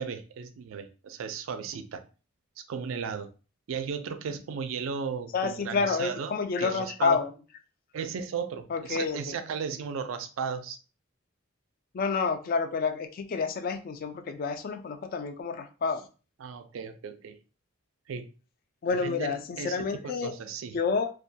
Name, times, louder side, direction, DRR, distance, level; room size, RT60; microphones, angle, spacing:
voice 1, 0.0-2.0 2.6-3.3 3.7-7.2 7.9-10.8 16.4-17.4 18.1-18.2 18.9-20.8, right 6 dB, 80° right, 9 dB, 0.4 m, -35 dB
voice 2, 5.3-7.3 8.7-9.4 11.9-16.1 18.8-20.3 20.7-21.1, left 5 dB, 45° left, 7 dB, 0.3 m, -29 dB
2.3 x 2.2 x 2.6 m, 0.34 s
head